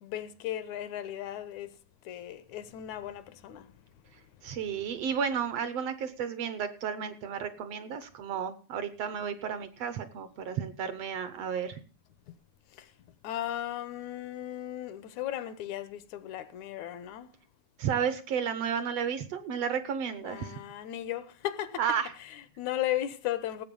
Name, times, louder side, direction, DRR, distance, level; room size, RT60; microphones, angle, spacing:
voice 1, 0.0-1.8 2.1-3.7 12.3-12.4 12.8-12.9 13.2-17.3 20.2-23.6, left 12 dB, 80° left, 2.1 m, -36 dB
voice 2, 4.4-11.8 17.8-20.6 21.8-22.1, right 7 dB, 70° right, 1.7 m, -32 dB
17.5 x 7.8 x 5.3 m
omnidirectional pair, 3.4 m